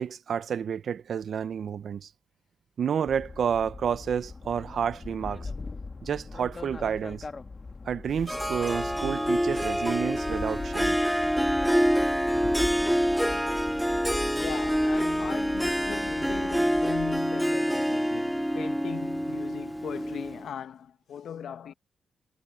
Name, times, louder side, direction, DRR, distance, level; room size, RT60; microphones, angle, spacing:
voice 1, 0.0-2.1 2.8-5.5 6.0-7.2 7.9-11.0, right 7 dB, 65° right, 0.7 m, -30 dB
sound 1, 3.1-17.2, left 3 dB, 30° left, 1.5 m, -41 dB
Harp, 8.3-20.5, equal, ahead, 0.6 m, -26 dB
voice 2, 14.4-21.7, left 8 dB, 80° left, 1.1 m, -39 dB
wide cardioid pair, 130°, 0 cm